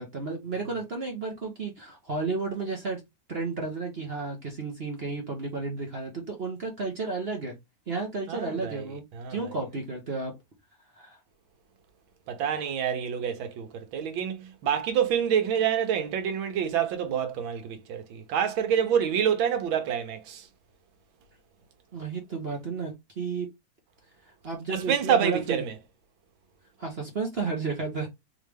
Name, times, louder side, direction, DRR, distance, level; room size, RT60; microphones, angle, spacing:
voice 1, 0.0-3.0 3.3-7.6 7.9-9.0 9.3-10.3 11.0-11.2 21.9-23.5 24.4-25.6 26.8-28.1, right 4 dB, 45° right, 0.8 m, -32 dB
voice 2, 8.3-8.9 9.1-9.6 12.3-20.5 24.7-25.7, right 8 dB, 85° right, 1.6 m, -27 dB
3.7 x 3.2 x 3.4 m
omnidirectional pair, 2.1 m